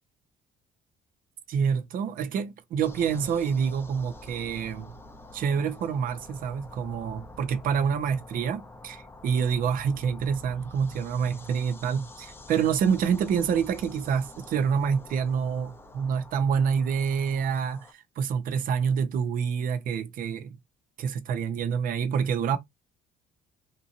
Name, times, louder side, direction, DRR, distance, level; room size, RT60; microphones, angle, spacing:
voice 1, 1.5-4.9 5.3-20.5 21.0-22.6, right 7 dB, 55° right, 0.6 m, -27 dB
sound 1, 2.8-17.9, left 2 dB, 15° left, 0.5 m, -47 dB
2.7 x 2.5 x 2.8 m
cardioid pair, 110°, 17 cm